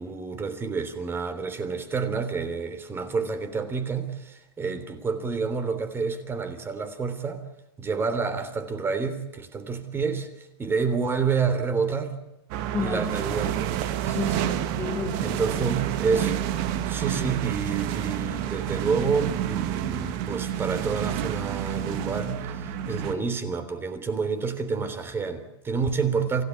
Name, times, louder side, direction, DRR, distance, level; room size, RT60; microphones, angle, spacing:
voice 1, 0.0-7.4 7.8-12.1 12.8-13.7 15.2-16.3 16.7-26.4, right 5 dB, 15° right, 3.4 m, -29 dB
sound 1, 12.5-23.1, right 11 dB, 50° right, 2.1 m, -29 dB
voice 2, 12.7-13.1 14.0-15.4 22.9-23.2, left 7 dB, 15° left, 0.8 m, -33 dB
28.0 x 17.0 x 8.3 m
hypercardioid pair, 135°, 14 cm